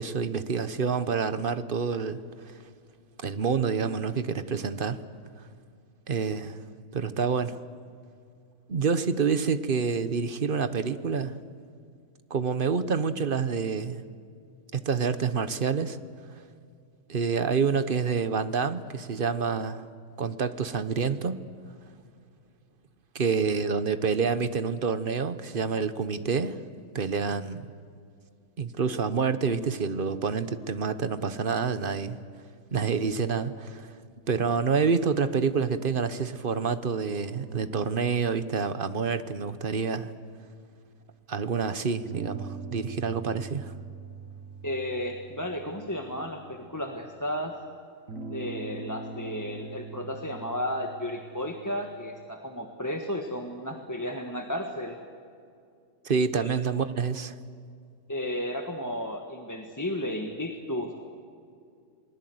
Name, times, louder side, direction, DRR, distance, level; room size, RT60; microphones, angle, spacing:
voice 1, 0.0-2.5 3.2-5.0 6.1-6.6 6.9-7.6 8.7-11.4 12.3-14.0 14.7-16.0 17.1-19.8 20.2-21.4 23.1-26.6 26.9-27.7 28.6-32.2 32.7-33.9 34.3-40.1 41.3-43.7 56.0-57.3, right 5 dB, 45° right, 12 dB, 1.0 m, -28 dB
sound 1, 37.3-41.3 42.0-47.1 48.1-52.3, right 5 dB, 70° right, 1.8 m, -43 dB
voice 2, 44.6-47.5 48.3-55.0 56.3-56.5 58.1-60.9, left 1 dB, 15° left, 3 dB, 1.5 m, -33 dB
27.0 x 20.5 x 7.9 m, 2.4 s
omnidirectional pair, 1.4 m